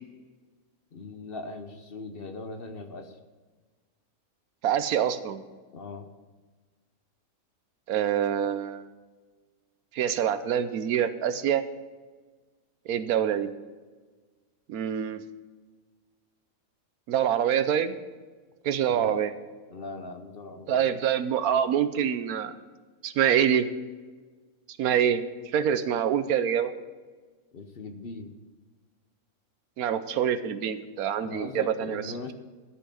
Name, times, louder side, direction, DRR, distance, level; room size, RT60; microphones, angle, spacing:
voice 1, 0.9-3.2 5.7-6.1 18.9-19.3 19.7-20.9 27.5-28.3 31.2-32.3, left 3 dB, 50° left, 7 dB, 0.8 m, -39 dB
voice 2, 4.6-5.4 7.9-8.9 9.9-11.6 12.9-13.5 14.7-15.2 17.1-17.9 18.6-19.3 20.7-22.6 23.0-23.7 24.8-26.7 29.8-32.0, right 9 dB, 85° right, 12 dB, 1.2 m, -25 dB
12.5 x 5.8 x 8.2 m, 1.4 s
omnidirectional pair, 1.5 m